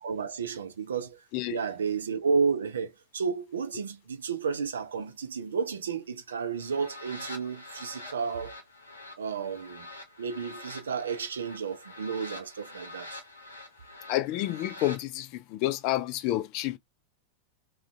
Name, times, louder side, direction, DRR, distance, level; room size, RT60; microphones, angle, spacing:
voice 1, 0.0-1.2 1.5-8.6 9.2-9.9 10.2-13.2, right 5 dB, 70° right, 0.4 m, -32 dB
sound 1, 6.5-15.0, left 2 dB, 80° left, 0.6 m, -46 dB
voice 2, 14.1-16.8, left 14 dB, 45° left, 0.3 m, -29 dB
2.5 x 2.1 x 2.4 m
figure-of-eight pair, 90°, 0 cm